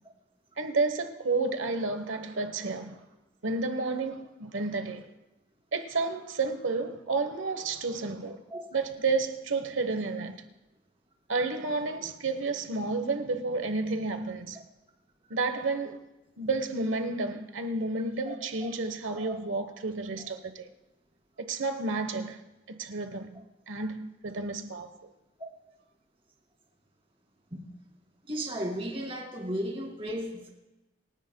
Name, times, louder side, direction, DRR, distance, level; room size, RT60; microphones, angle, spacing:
voice 1, 0.6-3.0 3.4-5.1 5.7-8.4 8.7-10.4 11.3-14.6 15.3-16.0 16.4-20.7 21.4-22.4 22.7-23.4 23.7-25.0, right 3 dB, 80° right, 1.2 m, -31 dB
voice 2, 28.3-30.5, equal, 30° right, 2.4 m, -35 dB
27.5 x 10.0 x 2.3 m
head